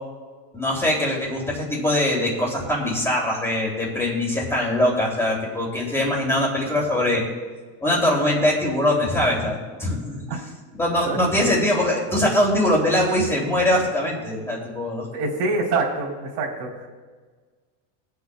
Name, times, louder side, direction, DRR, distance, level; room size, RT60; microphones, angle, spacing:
voice 1, 0.5-7.2 7.8-10.4 10.8-15.1, left 1 dB, 5° left, -3 dB, 2.9 m, -22 dB
voice 2, 9.9-10.4 11.0-11.2 15.1-16.9, right 3 dB, 80° right, -3 dB, 3.9 m, -26 dB
23.5 x 8.2 x 2.3 m, 1.4 s
supercardioid pair, 150°, 46 cm